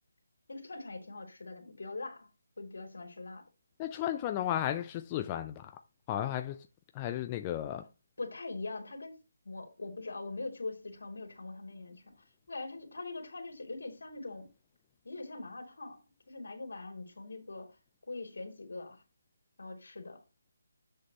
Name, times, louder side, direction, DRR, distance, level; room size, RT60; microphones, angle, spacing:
voice 1, 0.5-2.3 2.6-3.4 8.2-9.2 9.4-14.5 15.0-16.0 16.3-17.7 18.1-19.0 19.6-20.2, left 3 dB, 75° left, 2.9 m, -42 dB
voice 2, 3.8-5.8 6.1-6.7 6.9-7.9, left 11 dB, 20° left, 0.4 m, -34 dB
7.5 x 6.6 x 2.9 m
figure-of-eight pair, 160°, 0 cm